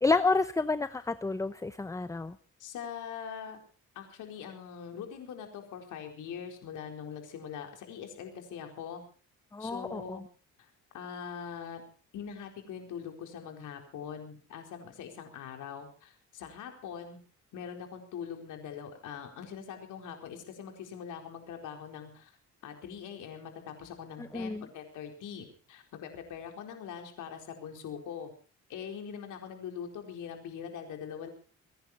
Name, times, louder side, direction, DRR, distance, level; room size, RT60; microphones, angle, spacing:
voice 1, 0.0-2.3 9.5-10.2 24.3-24.6, left 3 dB, 10° left, 14 dB, 0.7 m, -29 dB
voice 2, 2.6-3.6 3.9-9.0 9.6-10.2 10.6-11.8 12.1-17.2 17.5-22.4 22.6-28.3 28.7-31.3, left 7 dB, 85° left, 4 dB, 4.4 m, -42 dB
26.5 x 11.0 x 4.4 m, 0.42 s
cardioid pair, 90°, 30 cm